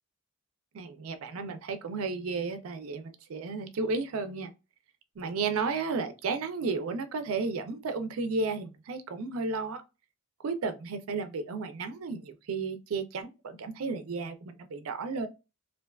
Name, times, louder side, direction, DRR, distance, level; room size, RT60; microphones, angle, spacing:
voice 1, 0.7-4.5 5.2-9.8 10.4-15.3, right 4 dB, 85° right, 0.4 m, -33 dB
2.5 x 2.2 x 2.2 m
head